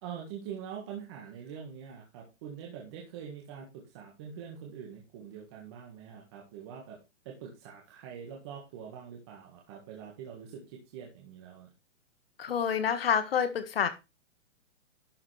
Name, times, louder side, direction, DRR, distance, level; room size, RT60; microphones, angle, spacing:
voice 1, 0.0-7.0 7.2-11.7, right 8 dB, 20° right, -1 dB, 1.7 m, -44 dB
voice 2, 12.4-13.9, left 7 dB, 50° left, 11 dB, 1.8 m, -28 dB
12.0 x 6.9 x 3.4 m, 0.26 s
hypercardioid pair, 180°, 37 cm